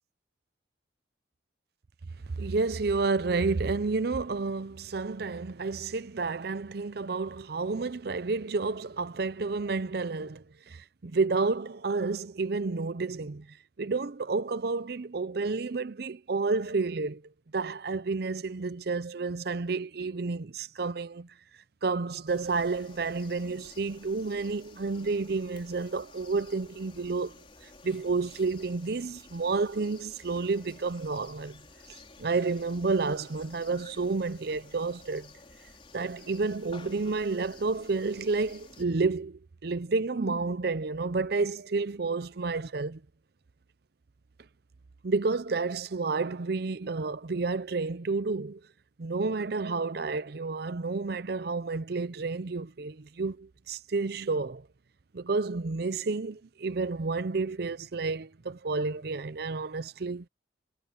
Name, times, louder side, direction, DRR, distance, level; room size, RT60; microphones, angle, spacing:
voice 1, 2.4-17.2 17.5-21.3 21.8-27.4 27.8-31.6 32.2-35.3 35.9-43.0 45.0-48.6 49.0-54.7 55.1-60.3, right 4 dB, 55° right, 0.6 m, -30 dB
sound 1, 22.3-38.8, left 3 dB, 30° left, 4.3 m, -53 dB
head